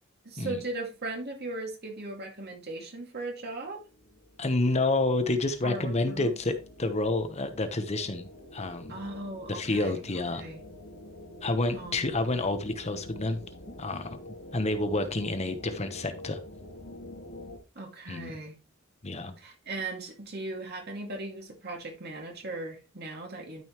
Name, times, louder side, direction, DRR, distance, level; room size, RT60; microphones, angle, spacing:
voice 1, 0.2-3.8 5.6-6.4 8.9-10.6 11.7-12.2 17.8-18.6 19.4-23.6, right 2 dB, 50° right, 2.2 m, -38 dB
sound 1, 3.8-17.6, left 1 dB, 85° left, 2.4 m, -47 dB
voice 2, 4.4-6.5 6.8-8.3 8.5-8.9 9.5-10.4 11.4-13.4 13.7-14.2 14.5-16.4 18.1-18.3 19.0-19.4, left 2 dB, 35° left, 1.0 m, -29 dB
12.0 x 5.4 x 3.1 m
head